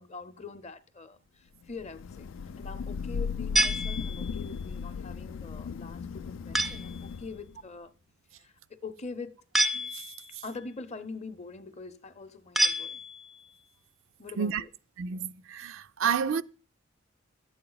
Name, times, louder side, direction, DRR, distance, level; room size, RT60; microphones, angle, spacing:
voice 1, 0.0-2.3 2.6-7.9 8.4-8.5 8.8-9.4 10.4-13.0 14.2-14.7, left 4 dB, 35° left, 0.7 m, -43 dB
Thunder / Rain, 1.8-7.6, left 6 dB, 70° left, 0.4 m, -36 dB
sound 1, 3.6-4.5 6.5-7.0 9.5-10.4 12.6-13.4, right 1 dB, ahead, 0.4 m, -28 dB
voice 2, 15.0-16.4, right 7 dB, 70° right, 0.4 m, -30 dB
10.5 x 7.8 x 3.9 m
head